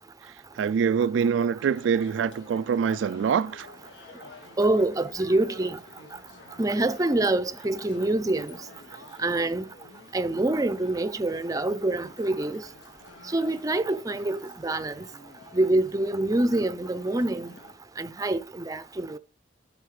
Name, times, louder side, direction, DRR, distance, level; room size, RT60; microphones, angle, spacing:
voice 1, 0.6-3.7, right 6 dB, 85° right, 0.3 m, -24 dB
sound 1, 1.6-17.7, left 2 dB, 75° left, 1.8 m, -49 dB
voice 2, 4.6-5.8 6.6-8.6 9.2-9.7 10.1-12.6 13.3-14.4 14.6-15.0 15.5-17.5 18.0-19.2, right 2 dB, 20° right, 0.5 m, -25 dB
9.4 x 6.2 x 3.3 m
head